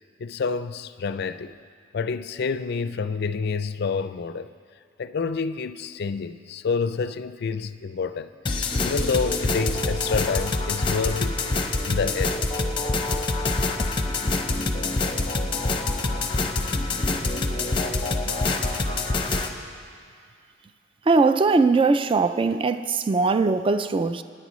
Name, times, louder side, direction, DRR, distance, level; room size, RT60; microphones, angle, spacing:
voice 1, 0.2-1.6 1.9-4.5 5.0-11.4 11.8-12.4, left 5 dB, 55° left, 0.4 m, -28 dB
sound 1, 8.5-19.5, left 2 dB, 25° left, 0.8 m, -25 dB
voice 2, 21.1-24.2, right 3 dB, 25° right, 0.3 m, -20 dB
25.0 x 9.9 x 3.1 m
head